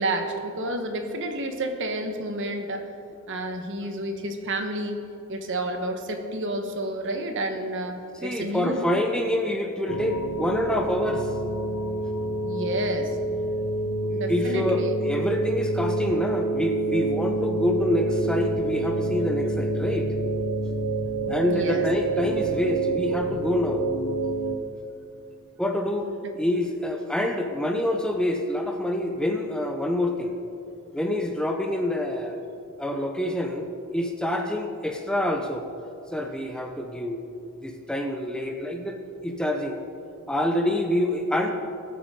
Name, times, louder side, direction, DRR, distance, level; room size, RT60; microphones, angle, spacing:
voice 1, 0.0-2.9 3.3-5.0 5.3-8.8 12.4-13.2 14.1-15.0 21.5-21.8 26.0-26.2, right 1 dB, 55° right, 5 dB, 1.2 m, -30 dB
voice 2, 8.2-11.3 14.0-20.1 21.3-23.9 25.6-26.1 26.3-30.3 30.9-32.4 32.8-35.7 36.1-37.2 37.6-39.0 39.2-39.8 40.3-41.5, left 1 dB, 5° left, 4 dB, 0.7 m, -26 dB
sound 1, 9.9-24.6, right 2 dB, 85° left, 0.8 m, -28 dB
20.5 x 8.4 x 3.7 m, 2.6 s
head